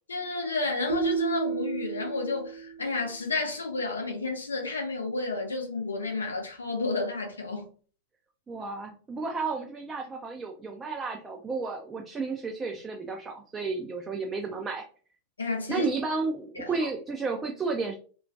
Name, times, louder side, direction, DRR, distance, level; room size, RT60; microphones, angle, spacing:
voice 1, 0.1-7.7 15.4-15.9 16.6-16.7, left 3 dB, 75° left, 0.6 m, -31 dB
sound 1, 0.9-3.1, right 6 dB, 70° right, 0.5 m, -31 dB
voice 2, 8.5-14.8 15.7-18.0, right 4 dB, 15° right, 0.3 m, -32 dB
2.3 x 2.1 x 2.6 m
figure-of-eight pair, 90°, 0 cm